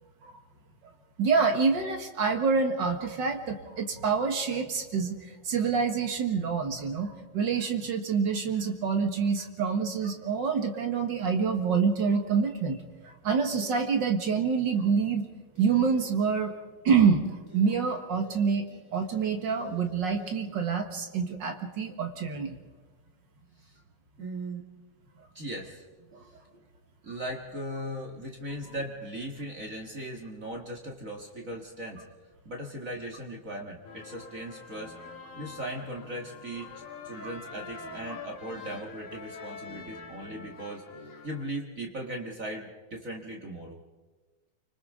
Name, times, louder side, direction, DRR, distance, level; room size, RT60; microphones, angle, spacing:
voice 1, 1.2-12.8 13.0-15.2 15.6-16.5 16.8-22.6 26.1-26.2 37.2-37.3, right 5 dB, 50° right, 5 dB, 1.5 m, -27 dB
sound 1, 13.5-14.4 14.7-15.2 15.5-16.4 17.5-18.4 18.7-20.3, left 3 dB, 5° right, 6.0 m, -50 dB
voice 2, 24.2-24.6 25.3-25.8 27.0-32.0 32.4-35.0 35.4-36.7 37.0-40.8 41.2-43.8, right 1 dB, 35° right, 0 dB, 1.6 m, -38 dB
sound 2, 33.8-41.4, left 4 dB, 65° left, 3.3 m, -44 dB
29.0 x 25.5 x 3.7 m, 1.3 s
omnidirectional pair, 3.7 m